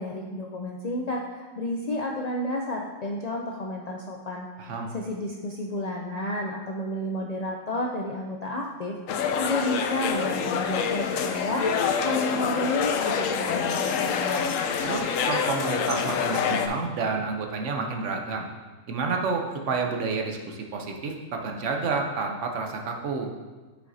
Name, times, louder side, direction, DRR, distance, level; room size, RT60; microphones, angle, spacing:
voice 1, 0.0-4.5 4.9-9.0 9.4-14.6, left 1 dB, 55° left, -1 dB, 0.4 m, -31 dB
voice 2, 4.6-4.9 14.8-18.5 18.9-23.3, right 4 dB, 70° right, 2 dB, 1.1 m, -29 dB
sound 1, 9.1-16.7, left 6 dB, 85° left, 1.0 m, -26 dB
7.6 x 6.6 x 2.7 m, 1.3 s
omnidirectional pair, 1.3 m